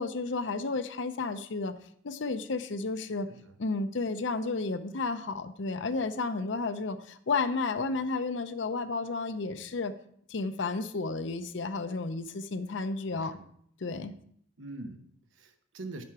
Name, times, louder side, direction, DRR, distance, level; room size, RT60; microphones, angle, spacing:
voice 1, 0.0-1.7 2.0-3.3 3.6-9.9 10.3-13.4 13.8-14.1, left 3 dB, 70° left, 10 dB, 0.6 m, -32 dB
voice 2, 13.1-13.5 14.6-16.0, right 2 dB, 90° right, 7 dB, 0.9 m, -44 dB
9.5 x 5.9 x 4.7 m, 0.65 s
head